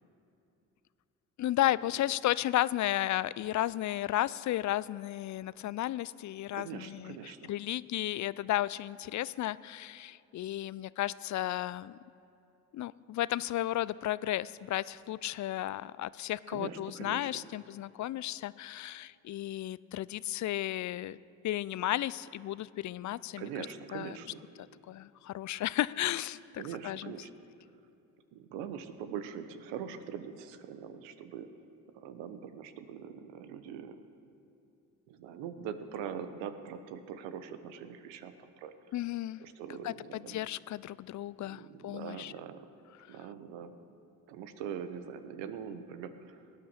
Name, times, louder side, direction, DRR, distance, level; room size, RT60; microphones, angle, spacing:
voice 1, 1.4-12.0 12.7-23.5 23.9-24.2 24.6-27.1 38.9-39.4 39.8-42.3, left 14 dB, 45° left, 19 dB, 0.5 m, -34 dB
voice 2, 6.5-7.5 16.5-17.5 23.4-24.4 26.6-27.3 28.3-31.5 31.9-34.0 35.1-38.7 39.4-40.4 41.4-42.7 43.1-43.8 44.3-46.4, right 8 dB, 75° right, 10 dB, 1.1 m, -42 dB
18.0 x 10.0 x 6.7 m, 2.7 s
hypercardioid pair, 55°, 44 cm